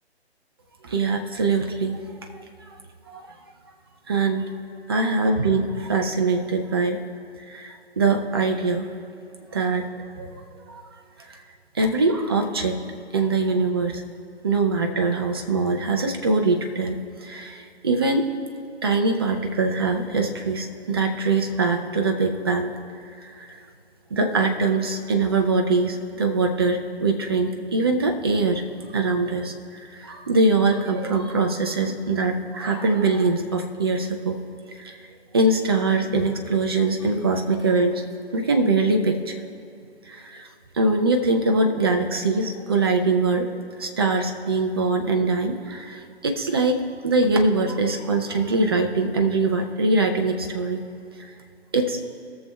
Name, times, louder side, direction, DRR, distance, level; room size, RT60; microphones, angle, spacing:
voice 1, 0.8-2.0 3.1-3.2 4.1-4.5 4.9-7.0 7.5-8.9 9.5-9.9 10.2-10.4 10.7-10.8 11.3-11.4 11.7-12.8 13.1-14.0 14.4-18.3 18.8-22.7 23.4-23.5 24.1-28.6 28.9-29.5 29.9-34.4 34.8-35.0 35.3-38.0 38.3-39.5 40.1-40.5 40.7-43.5 43.8-50.8 51.7-52.0, right 3 dB, 25° right, 4 dB, 0.5 m, -23 dB
20.5 x 6.8 x 2.3 m, 2.6 s
figure-of-eight pair, 145°, 33 cm